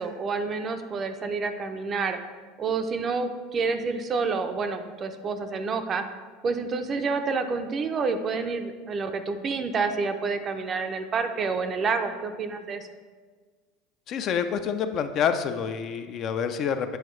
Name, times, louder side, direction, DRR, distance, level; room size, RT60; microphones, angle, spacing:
voice 1, 0.0-2.2 2.6-6.0 6.4-12.9, right 4 dB, 30° right, 8 dB, 0.4 m, -28 dB
voice 2, 14.1-17.0, left 7 dB, 40° left, 9 dB, 0.4 m, -27 dB
7.8 x 4.6 x 3.1 m, 1.5 s
supercardioid pair, 135°, 0 cm